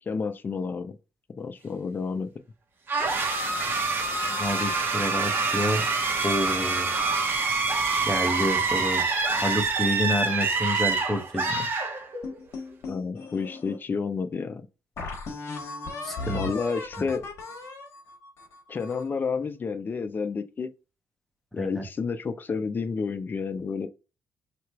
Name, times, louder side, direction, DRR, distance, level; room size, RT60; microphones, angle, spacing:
voice 1, 0.1-1.0 1.4-2.3 12.9-14.7 16.3-17.3 18.7-20.7 21.5-23.9, left 5 dB, 40° left, 0.6 m, -30 dB
sound 1, 2.9-12.4, right 4 dB, 40° right, 1.1 m, -26 dB
voice 2, 4.2-5.8 6.2-6.9 8.0-9.0 9.4-11.7 16.0-16.4 17.0-17.1 21.5-21.8, equal, 5° left, 1.1 m, -29 dB
sound 2, 12.2-13.8 14.3-14.4 15.0-19.2, left 3 dB, 65° left, 1.2 m, -37 dB
3.1 x 2.9 x 4.5 m
cardioid pair, 85°, 5 cm